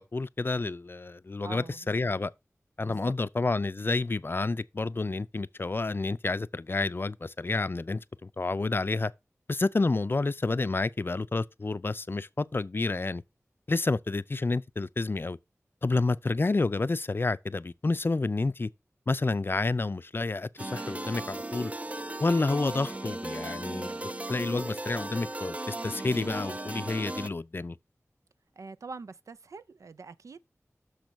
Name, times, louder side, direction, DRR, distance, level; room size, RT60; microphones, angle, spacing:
voice 1, 0.0-2.3 2.8-9.1 9.5-13.2 13.7-15.4 15.8-18.7 19.1-21.7 22.2-27.8, left 3 dB, 45° left, 0.4 m, -29 dB
voice 2, 1.4-2.2 2.8-3.1 28.6-30.4, right 4 dB, 90° right, 0.4 m, -45 dB
sound 1, 20.6-27.3, right 1 dB, 25° right, 0.5 m, -36 dB
6.4 x 5.1 x 6.1 m
wide cardioid pair, 60°, 5 cm